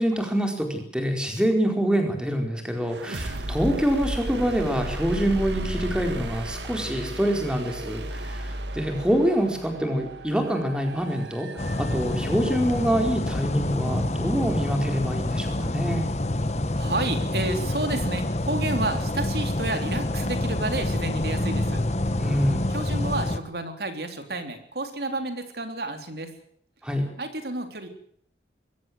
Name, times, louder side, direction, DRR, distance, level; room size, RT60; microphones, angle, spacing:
voice 1, 0.0-11.5 11.8-16.1 22.2-22.7 26.8-27.1, equal, 5° right, 3 dB, 4.6 m, -25 dB
sound 1, 2.8-12.6, right 1 dB, 85° right, 2.1 m, -34 dB
sound 2, 11.6-23.4, left 1 dB, 40° left, 1.3 m, -27 dB
voice 2, 16.7-21.8 22.7-26.3 27.2-27.9, right 2 dB, 65° right, 7 dB, 3.5 m, -30 dB
22.5 x 17.5 x 7.9 m, 0.64 s
head